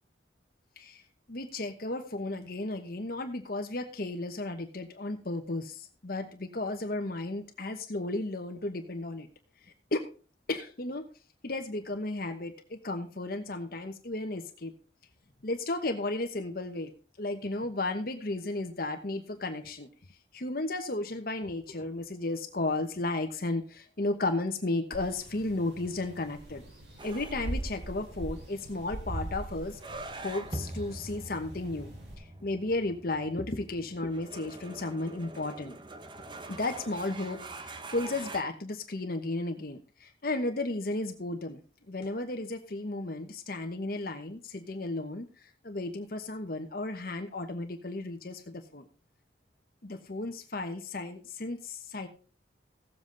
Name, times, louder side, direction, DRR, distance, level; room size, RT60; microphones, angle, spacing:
voice 1, 1.3-9.3 9.9-10.1 10.5-11.1 11.4-14.7 15.4-16.9 17.2-19.9 20.3-26.6 27.0-29.8 30.2-31.9 32.2-35.8 36.5-41.6 41.9-45.3 45.6-48.9 49.8-52.1, left 2 dB, 55° left, 5 dB, 1.1 m, -34 dB
sound 1, 24.9-32.1, right 1 dB, 75° right, 4.2 m, -41 dB
sound 2, 27.0-38.4, right 2 dB, 25° right, 0.9 m, -44 dB
16.0 x 7.6 x 3.9 m, 0.37 s
head